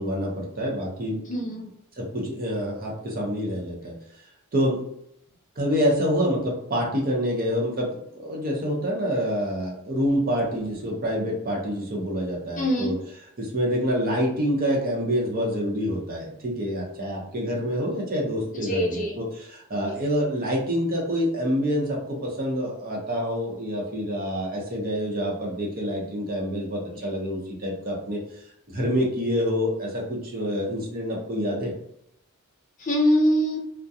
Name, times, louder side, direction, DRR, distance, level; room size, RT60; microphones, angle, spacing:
voice 1, 0.0-1.2 1.9-3.9 4.5-4.8 5.6-12.9 13.4-28.2 28.7-31.7, equal, 45° right, -2 dB, 0.7 m, -27 dB
voice 2, 1.3-1.7 12.6-13.0 18.6-19.2 19.9-20.0 32.8-33.6, equal, 40° left, -1 dB, 0.6 m, -23 dB
2.3 x 2.1 x 2.7 m, 0.72 s
head